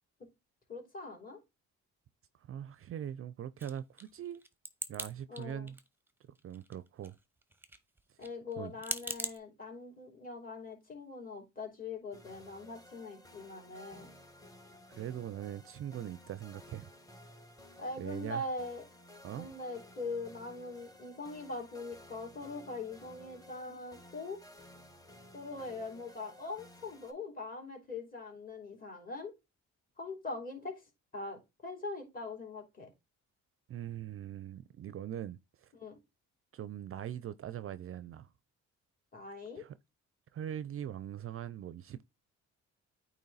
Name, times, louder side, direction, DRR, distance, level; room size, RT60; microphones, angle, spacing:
voice 1, 0.7-1.4 5.3-5.7 8.2-14.1 17.8-18.8 19.4-24.4 25.3-29.3 30.0-30.7 31.1-32.9 35.7-36.0 39.1-39.7, left 3 dB, 30° left, 3.1 m, -42 dB
voice 2, 2.4-4.4 4.9-5.8 6.4-7.2 8.6-8.7 14.9-16.9 18.0-18.4 19.2-19.5 33.7-35.7 36.5-38.3 39.6-39.7 40.3-42.0, right 10 dB, 45° right, 0.4 m, -41 dB
sound 1, 3.6-5.1 5.4-6.1 6.3-9.4, right 2 dB, 5° right, 0.8 m, -40 dB
sound 2, 12.1-27.1, left 1 dB, 10° left, 1.4 m, -56 dB
8.7 x 3.0 x 4.0 m
cardioid pair, 90°, 30 cm